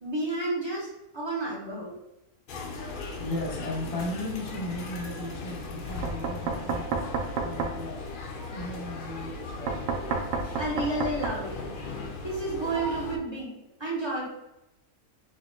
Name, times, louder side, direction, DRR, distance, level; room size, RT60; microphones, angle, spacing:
voice 1, 0.0-1.9 10.4-11.5 12.2-13.5 13.8-14.3, right 2 dB, 25° right, -6 dB, 0.7 m, -31 dB
sound 1, 2.5-13.2, left 3 dB, 70° left, 0.4 m, -38 dB
voice 2, 3.2-8.1 8.5-9.9, left 2 dB, 30° left, -2 dB, 0.8 m, -36 dB
Knock, 6.0-7.8 9.7-11.4, right 5 dB, 70° right, 0.9 m, -30 dB
4.9 x 2.3 x 2.7 m, 0.90 s
omnidirectional pair, 1.5 m